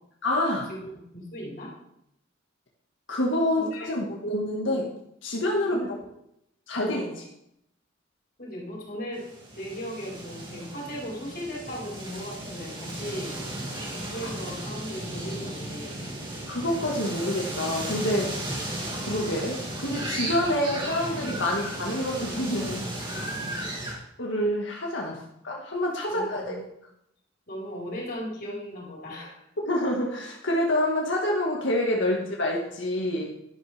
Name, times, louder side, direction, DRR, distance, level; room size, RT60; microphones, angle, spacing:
voice 1, 0.2-0.7 3.1-4.9 5.2-5.8 6.7-7.1 16.5-18.4 19.0-22.8 24.2-26.6 29.6-33.3, left 1 dB, 75° left, -2 dB, 2.0 m, -27 dB
voice 2, 1.1-1.7 3.6-3.9 5.7-6.1 6.7-7.2 8.4-9.2 9.6-13.4 13.9-16.1 23.3-23.6 26.1-26.6 27.5-29.4 32.1-32.2, equal, 50° left, -5 dB, 4.7 m, -37 dB
sound 1, 9.2-23.9, right 1 dB, 25° right, 2.7 m, -35 dB
12.0 x 11.0 x 3.6 m, 0.77 s
head